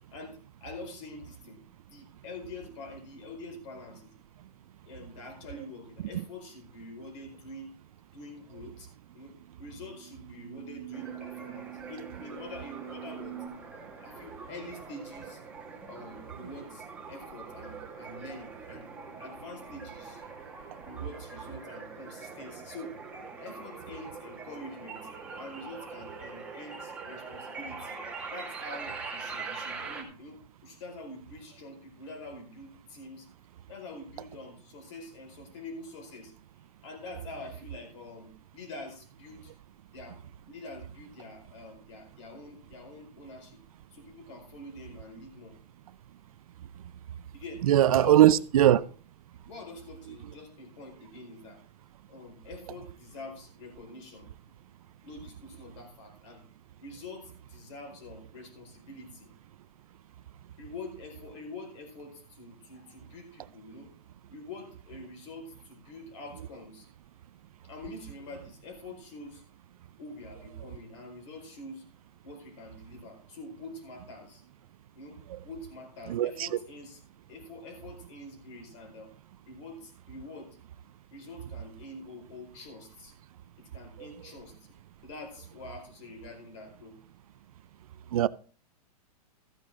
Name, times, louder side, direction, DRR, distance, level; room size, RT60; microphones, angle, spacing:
voice 1, 0.1-1.6 1.9-4.1 4.8-7.7 8.1-8.9 9.1-13.4 14.0-15.4 15.8-18.9 19.2-20.2 20.8-22.9 23.4-25.1 25.3-28.0 28.3-33.3 33.7-36.3 36.8-39.5 39.9-40.2 40.5-43.6 43.9-45.5 47.3-48.8 49.5-51.6 52.1-54.3 55.0-56.4 56.8-59.3 60.6-63.9 64.3-66.9 67.6-69.4 70.0-71.8 72.2-74.4 74.9-77.0 77.3-79.1 79.5-80.6 81.1-83.1 83.6-84.5 85.0-87.0, left 2 dB, 45° left, 4.8 m, -45 dB
sound 1, 9.1-13.5, right 14 dB, 25° left, 2.3 m, -45 dB
sound 2, 10.9-30.0, right 4 dB, 5° right, 2.0 m, -43 dB
voice 2, 47.7-48.8 76.1-76.5 88.1-88.3, right 12 dB, 60° right, 0.5 m, -20 dB
14.0 x 10.0 x 3.7 m
hypercardioid pair, 160°, 20 cm